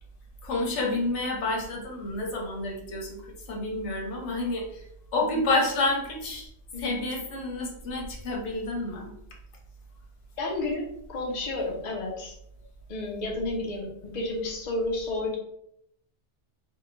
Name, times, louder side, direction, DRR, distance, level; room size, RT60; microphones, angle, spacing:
voice 1, 0.4-3.2 3.5-4.9 5.1-6.5 6.8-9.1, left 2 dB, 80° left, 0 dB, 1.0 m, -29 dB
voice 2, 10.4-10.8 11.1-12.3 12.9-15.4, left 2 dB, 45° left, -1 dB, 0.7 m, -31 dB
3.5 x 2.1 x 3.0 m, 0.74 s
omnidirectional pair, 1.2 m